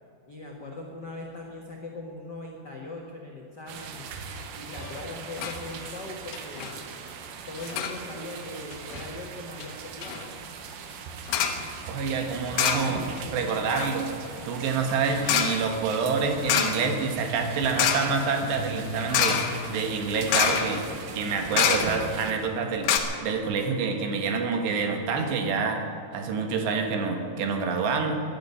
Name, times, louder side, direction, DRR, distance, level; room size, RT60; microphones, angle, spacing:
voice 1, 0.3-4.0 4.6-6.8 7.5-10.3, left 2 dB, 85° left, -1 dB, 0.9 m, -40 dB
sound 1, 3.7-22.3, right 6 dB, 65° right, 2.4 m, -40 dB
sound 2, 4.7-5.1 5.4-5.6 5.9-6.0 6.3-6.7 7.6-8.0 8.7-9.1 9.6-9.7 10.0-10.2 11.3-11.7 12.5-13.2 13.5-22.2 22.6-22.7 22.8-23.0, left 8 dB, 70° left, 2.6 m, -28 dB
voice 2, 11.9-13.1 13.3-14.1 14.5-19.4 19.7-20.8 21.2-22.9 23.2-25.8 26.1-28.2, right 5 dB, 85° right, 4 dB, 3.8 m, -27 dB
12.5 x 11.5 x 9.5 m, 2.6 s
omnidirectional pair, 4.8 m